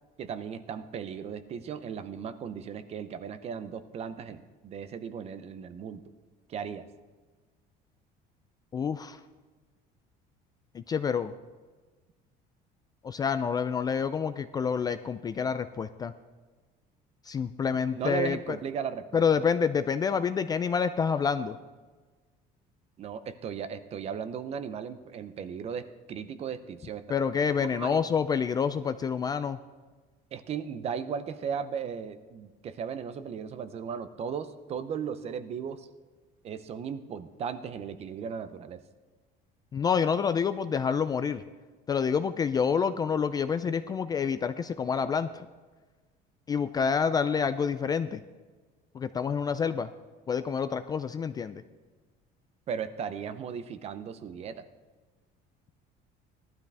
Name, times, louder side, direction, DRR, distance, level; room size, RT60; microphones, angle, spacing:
voice 1, 0.2-6.0 6.5-6.9 17.7-19.2 23.0-27.0 27.7-28.0 30.3-35.9 36.4-38.8 52.7-54.6, right 7 dB, 35° right, 12 dB, 0.6 m, -36 dB
voice 2, 8.7-9.2 10.7-11.3 13.0-16.1 17.3-18.4 19.1-21.6 27.1-29.6 39.7-41.4 41.9-45.5 46.5-48.2 48.9-49.9 50.3-51.6, left 6 dB, 20° left, 11 dB, 0.3 m, -28 dB
17.5 x 12.0 x 3.4 m, 1.3 s
cardioid pair, 160°, 18 cm